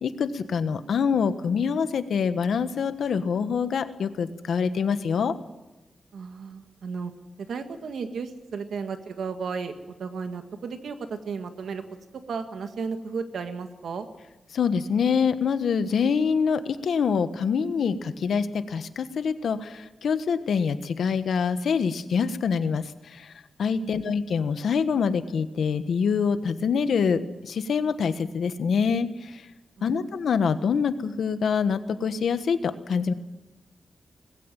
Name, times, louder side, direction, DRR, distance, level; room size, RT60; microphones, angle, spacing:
voice 1, 0.0-5.3 14.5-23.3 23.6-29.5 29.8-33.1, left 6 dB, 85° left, 11 dB, 1.3 m, -25 dB
voice 2, 6.1-7.1 7.4-9.7 10.0-11.8 12.3-14.1 23.8-24.0 29.8-30.1, right 5 dB, 85° right, 8 dB, 1.8 m, -34 dB
20.0 x 16.0 x 9.1 m, 1.0 s
wide cardioid pair, 130°, 0 cm